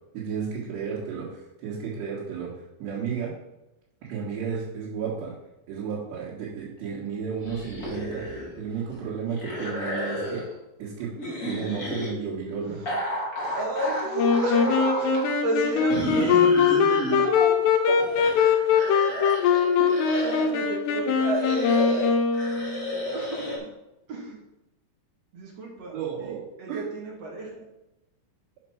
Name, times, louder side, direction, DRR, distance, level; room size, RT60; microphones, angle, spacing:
voice 1, 0.1-2.5 2.8-3.4 4.1-5.4 5.7-10.5 10.8-12.8 15.9-16.1 17.2-17.6 17.9-18.3 19.8-19.9 25.9-26.4 26.7-26.8, right 6 dB, 90° right, -7 dB, 4.0 m, -33 dB
sound 1, 7.4-8.6 8.9-10.5 11.2-12.1 12.8-15.2 15.9-17.2 17.8-20.6 21.2-23.6, equal, 25° left, 1.9 m, -32 dB
voice 2, 13.5-16.6 17.1-17.3 18.6-19.0 19.4-19.5 20.2-22.2 23.1-23.7 24.1-24.4 25.3-26.3 26.6-27.7, right 1 dB, 50° right, -2 dB, 2.4 m, -32 dB
Wind instrument woodwind instrument, 14.2-22.9, left 6 dB, 80° left, 3.0 m, -22 dB
8.0 x 5.8 x 5.8 m, 0.92 s
omnidirectional pair, 4.8 m